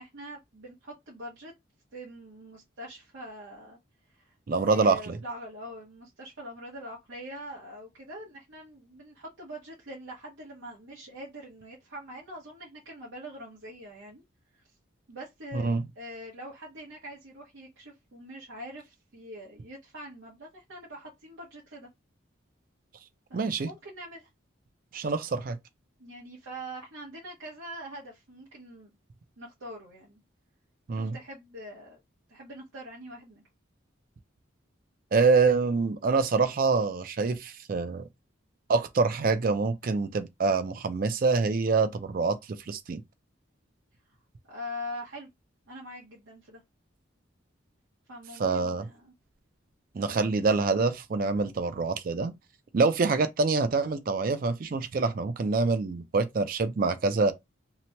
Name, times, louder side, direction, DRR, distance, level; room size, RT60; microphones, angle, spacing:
voice 1, 0.0-1.5 1.9-3.8 4.2-14.2 14.5-14.6 15.1-21.9 23.3-24.3 26.0-28.9 29.4-30.2 30.9-32.0 32.3-33.4 44.4-45.3 45.7-46.6 48.1-49.1 50.1-50.3, equal, 80° right, 0.9 m, -43 dB
voice 2, 4.5-5.2 15.5-15.9 23.3-23.7 24.9-25.6 30.9-31.2 35.1-38.1 38.7-42.4 42.7-43.0 48.4-48.9 49.9-52.3 52.7-57.3, right 4 dB, 45° right, 0.4 m, -26 dB
2.9 x 2.1 x 2.8 m
head